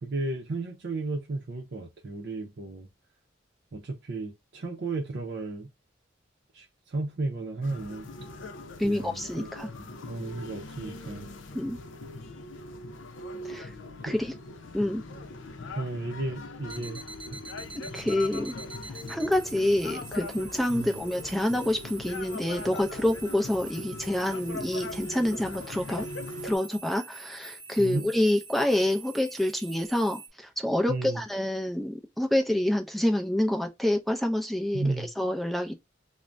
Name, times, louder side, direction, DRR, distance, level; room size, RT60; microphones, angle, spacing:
voice 1, 0.0-2.9 3.7-5.7 6.5-8.1 8.8-9.5 9.8-11.3 14.1-14.2 15.8-17.0 17.3-17.4 20.7-21.0 27.8-28.1 30.9-31.2 34.7-35.1, right 2 dB, 60° right, 0.6 m, -33 dB
sound 1, 7.6-26.6, left 2 dB, 85° left, 0.5 m, -41 dB
voice 2, 8.8-9.7 11.5-11.8 13.4-13.7 14.0-14.3 14.7-15.0 17.9-18.5 19.1-26.1 26.4-35.7, left 1 dB, ahead, 0.4 m, -27 dB
sound 2, 16.7-30.3, right 3 dB, 25° right, 0.7 m, -45 dB
2.5 x 2.1 x 3.1 m
head